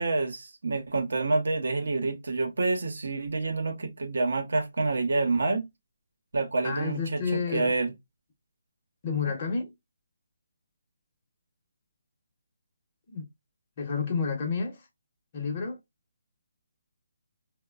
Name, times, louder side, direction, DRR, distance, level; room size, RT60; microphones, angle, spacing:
voice 1, 0.0-5.7 6.3-7.9, right 3 dB, 80° right, 0.7 m, -28 dB
voice 2, 6.6-7.7 9.0-9.7 13.1-13.2 13.8-14.9 15.3-15.8, left 5 dB, 35° left, 0.8 m, -30 dB
2.9 x 2.1 x 2.3 m
hypercardioid pair, 165°, 0 cm